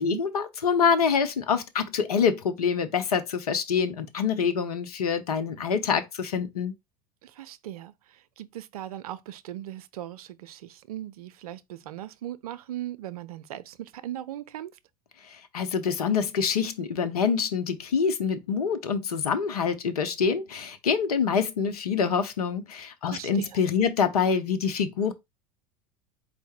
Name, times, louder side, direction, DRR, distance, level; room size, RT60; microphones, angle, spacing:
voice 1, 0.0-6.7 15.3-25.1, left 6 dB, 80° left, 0.7 m, -26 dB
voice 2, 7.2-14.8 23.1-23.6, right 12 dB, 75° right, 0.5 m, -39 dB
4.6 x 2.1 x 4.4 m
hypercardioid pair, 80°, 19 cm